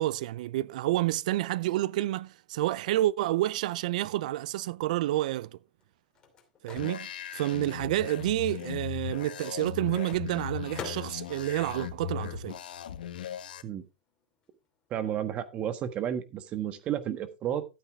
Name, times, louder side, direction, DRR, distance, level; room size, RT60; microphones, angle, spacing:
voice 1, 0.0-5.5 6.6-12.6, right 15 dB, 55° right, 0.4 m, -29 dB
Microwave oven, 4.8-12.9 13.2-15.1, left 6 dB, 20° left, 2.8 m, -50 dB
sound 1, 6.8-13.6, left 10 dB, 90° left, 1.5 m, -38 dB
voice 2, 14.9-17.6, right 10 dB, 25° right, 1.4 m, -32 dB
13.0 x 8.2 x 3.6 m
supercardioid pair, 160°, 5 cm